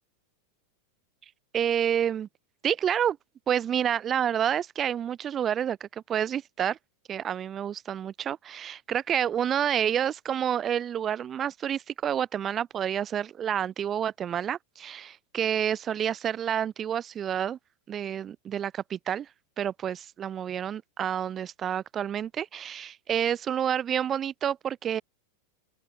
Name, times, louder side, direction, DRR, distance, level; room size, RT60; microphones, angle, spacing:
voice 1, 1.5-2.3 2.6-3.2 3.5-6.8 7.1-17.6 17.9-19.3 19.6-25.0, right 9 dB, 25° right, 3.6 m, -29 dB
open air
figure-of-eight pair, 90°, 0 cm